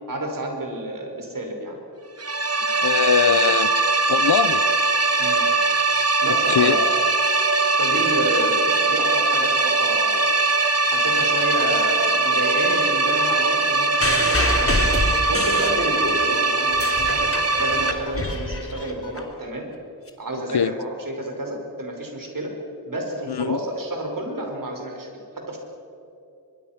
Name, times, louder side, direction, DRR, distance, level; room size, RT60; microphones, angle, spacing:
voice 1, 0.1-1.8 5.2-5.4 6.2-6.9 7.8-10.3 10.9-14.8 15.3-17.3 17.6-19.7 20.2-22.5 22.9-25.6, right 1 dB, 55° right, 2 dB, 5.4 m, -29 dB
sound 1, 2.2-17.9, right 3 dB, 40° right, 1.7 m, -21 dB
voice 2, 2.8-3.7 4.1-4.6 6.3-6.8 20.5-20.7 23.3-23.6, left 7 dB, 75° left, 15 dB, 0.9 m, -21 dB
sound 2, 10.7-11.1 11.5-13.9 14.4-16.6 17.3-19.1, left 2 dB, 50° left, 2.7 m, -40 dB
sound 3, 14.0-16.2 16.6-19.2 20.1-20.2, left 2 dB, 35° left, 3.1 m, -26 dB
24.0 x 22.5 x 6.0 m, 2.7 s
wide cardioid pair, 70°, 39 cm